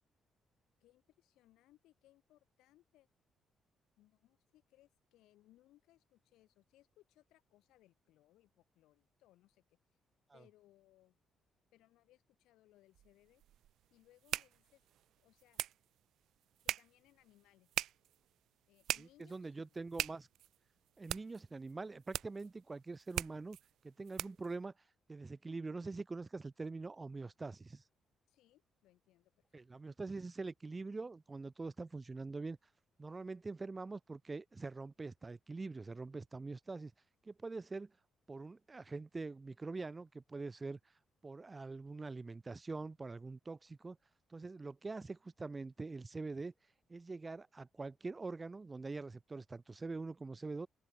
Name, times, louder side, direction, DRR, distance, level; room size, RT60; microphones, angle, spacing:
voice 1, 0.8-3.1 4.0-9.8 10.3-11.2 11.7-13.4 13.9-14.8 15.2-15.6 16.6-17.7 18.7-19.8 28.3-29.9, left 15 dB, 90° left, 6.0 m, -69 dB
sound 1, 12.9-24.5, right 12 dB, 80° right, 1.4 m, -44 dB
voice 2, 19.0-20.3 21.0-23.6 23.8-24.7 25.1-27.8 29.5-32.6 33.0-36.9 37.2-38.0 38.3-40.8 41.2-44.0 44.3-46.5 46.9-50.7, right 3 dB, 25° right, 0.5 m, -44 dB
open air
cardioid pair, 90°, 0 cm